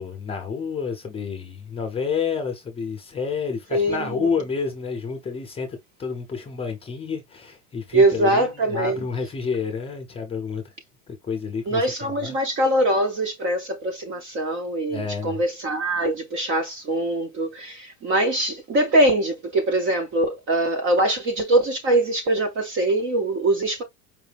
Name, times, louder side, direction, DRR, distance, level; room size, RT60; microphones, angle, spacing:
voice 1, 0.0-10.6 11.1-12.4 14.9-15.4, left 5 dB, 15° left, 0.7 m, -29 dB
voice 2, 3.7-4.3 7.9-9.0 11.7-23.8, right 1 dB, 25° right, 0.6 m, -22 dB
5.0 x 2.1 x 3.3 m
supercardioid pair, 160°, 45 cm